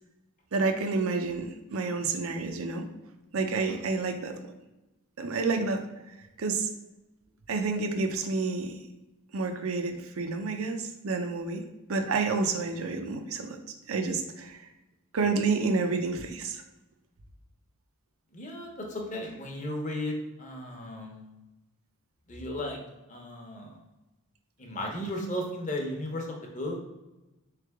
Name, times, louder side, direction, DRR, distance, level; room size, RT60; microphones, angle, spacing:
voice 1, 0.5-2.9 3.3-4.4 5.2-5.9 6.4-6.7 7.5-8.8 9.3-11.6 11.9-13.6 13.9-14.7 15.1-16.6, right 4 dB, 75° right, 6 dB, 0.6 m, -29 dB
voice 2, 18.3-21.3 22.3-22.8 23.1-23.8 24.6-26.8, left 1 dB, 35° left, 0 dB, 0.8 m, -35 dB
3.6 x 3.3 x 3.5 m, 1.0 s
head